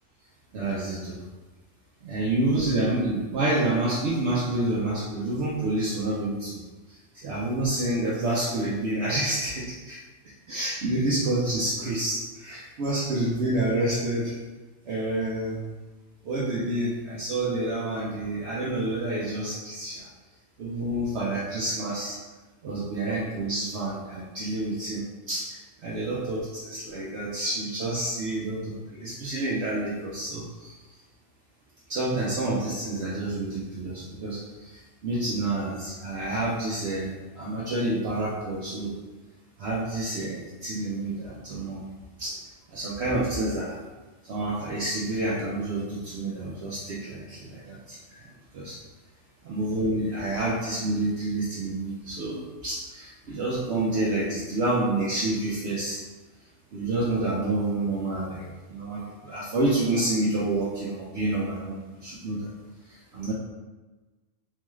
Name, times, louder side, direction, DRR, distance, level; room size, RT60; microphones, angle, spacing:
voice 1, 0.5-1.2 2.0-6.6 6.9-10.0 10.5-14.4 14.8-15.7 16.2-20.1 20.6-22.2 22.6-31.0 31.9-38.9 39.6-41.8 42.2-42.4 42.7-43.8 44.2-48.8 49.4-56.0 56.7-62.5 62.8-63.3, right 2 dB, 60° right, -6 dB, 0.9 m, -28 dB
4.5 x 2.3 x 3.1 m, 1.2 s
omnidirectional pair, 1.4 m